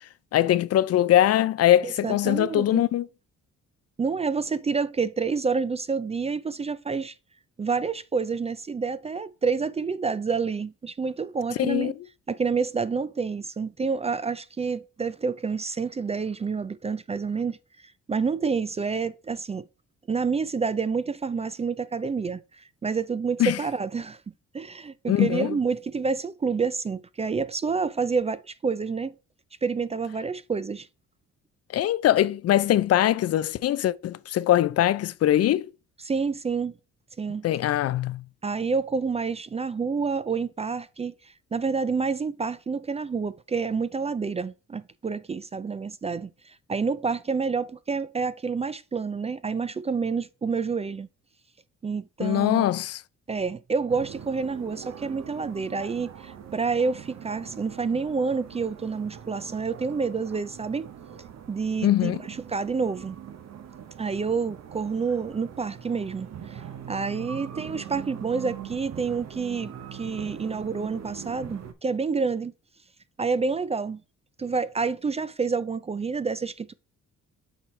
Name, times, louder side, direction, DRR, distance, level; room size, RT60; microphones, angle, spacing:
voice 1, 0.3-3.1 11.6-11.9 23.4-23.6 25.1-25.6 31.7-35.7 37.4-38.2 52.2-53.0 61.8-62.2, left 12 dB, 55° left, 0.4 m, -22 dB
voice 2, 1.8-2.8 4.0-7.1 7.6-11.9 12.3-17.6 18.1-19.7 20.1-24.2 24.5-29.1 29.6-30.9 36.0-36.7 37.2-37.5 38.4-41.1 41.5-51.1 51.8-52.7 53.3-60.9 61.5-63.2 64.0-66.6 66.9-72.5 73.2-74.0 74.4-76.7, right 5 dB, 20° right, 0.4 m, -28 dB
sound 1, 53.9-71.7, right 9 dB, 60° right, 1.0 m, -42 dB
7.9 x 4.5 x 3.2 m
cardioid pair, 90°, 30 cm